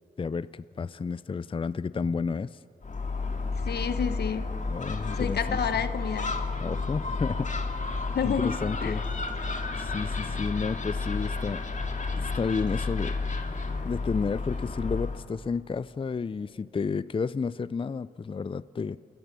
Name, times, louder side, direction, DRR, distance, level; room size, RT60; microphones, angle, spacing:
voice 1, 0.2-2.6 4.7-5.6 6.6-7.8 8.2-9.0 9.4-11.6 12.2-13.2 13.8-19.0, left 5 dB, 30° left, 17 dB, 0.4 m, -31 dB
Gull seagull, 2.8-15.2, left 3 dB, 50° left, 2.0 m, -31 dB
voice 2, 3.6-4.4 5.2-6.3 8.1-8.5 8.8-9.0, left 7 dB, 80° left, 11 dB, 1.1 m, -29 dB
28.5 x 13.5 x 6.8 m, 2.6 s
cardioid pair, 45°, 17 cm